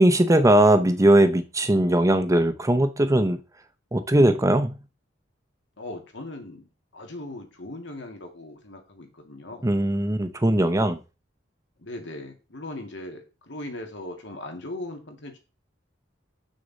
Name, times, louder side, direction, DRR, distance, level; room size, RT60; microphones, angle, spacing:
voice 1, 0.0-3.4 3.9-4.8 9.6-11.0, right 1 dB, 15° right, 10 dB, 0.7 m, -19 dB
voice 2, 5.8-6.7 6.9-9.6 11.8-15.4, left 1 dB, 65° left, 4 dB, 2.2 m, -38 dB
7.6 x 6.4 x 4.0 m, 0.30 s
head